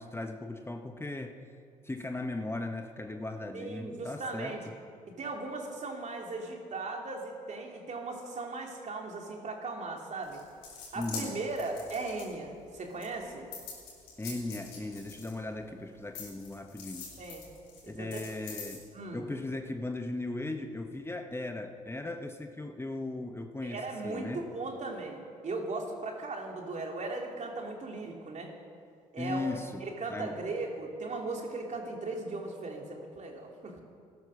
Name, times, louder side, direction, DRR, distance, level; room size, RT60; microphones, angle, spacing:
voice 1, 0.0-1.4 1.8-4.6 10.9-11.4 14.2-17.1 17.9-18.8 19.1-24.5 29.2-30.4, left 2 dB, 15° left, 5 dB, 1.1 m, -37 dB
voice 2, 3.5-4.6 5.2-10.4 10.9-13.5 17.2-17.4 17.8-18.2 18.9-19.3 23.6-28.5 29.1-33.8, right 3 dB, 45° right, 1 dB, 3.1 m, -38 dB
sound 1, 10.2-12.6 13.0-15.7 16.1-18.8, left 5 dB, 80° left, 4.1 m, -44 dB
15.5 x 12.0 x 6.6 m, 2.3 s
hypercardioid pair, 55°, 16 cm